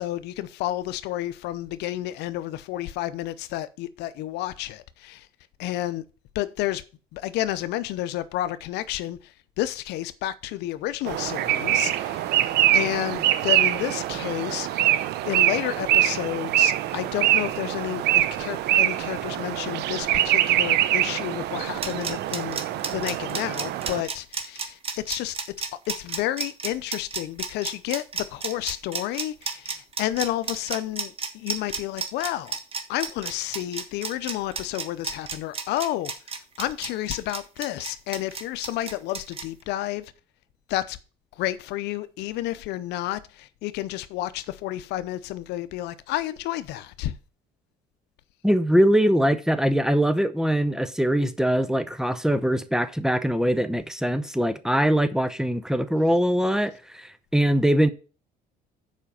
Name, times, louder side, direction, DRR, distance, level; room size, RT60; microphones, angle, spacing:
voice 1, 0.0-5.3 5.6-6.0 6.3-6.8 7.1-14.8 15.2-22.6 22.9-25.4 25.9-32.6 32.9-36.1 36.6-40.1 40.7-41.0 41.4-47.1, left 14 dB, 85° left, 0.7 m, -31 dB
sound 1, 11.1-24.0, right 13 dB, 80° right, 0.7 m, -24 dB
sound 2, 21.6-39.4, right 5 dB, 35° right, 1.5 m, -32 dB
voice 2, 48.4-57.9, equal, 5° right, 0.7 m, -22 dB
7.4 x 5.1 x 6.8 m
cardioid pair, 110°, 17 cm